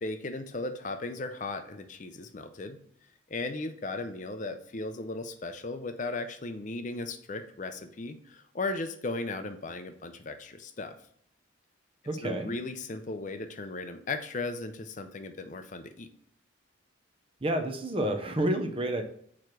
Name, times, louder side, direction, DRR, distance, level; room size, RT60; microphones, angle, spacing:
voice 1, 0.0-2.8 3.3-11.0 12.2-16.1, left 3 dB, 40° left, 8 dB, 0.5 m, -36 dB
voice 2, 12.0-12.5 17.4-19.0, right 1 dB, 25° right, 6 dB, 0.7 m, -29 dB
4.9 x 4.6 x 5.9 m, 0.64 s
head